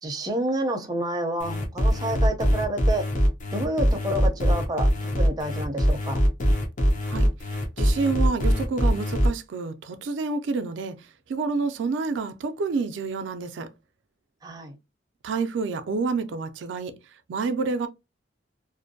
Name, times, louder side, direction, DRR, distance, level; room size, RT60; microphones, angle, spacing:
voice 1, 0.0-3.0 3.5-6.2 14.4-14.7, right 1 dB, 20° right, 0.5 m, -29 dB
sound 1, 1.4-9.3, equal, 45° left, 0.7 m, -22 dB
voice 2, 7.1-11.0 11.3-13.7 15.2-16.9 17.3-17.9, right 4 dB, 85° right, 0.4 m, -28 dB
2.5 x 2.1 x 2.5 m
head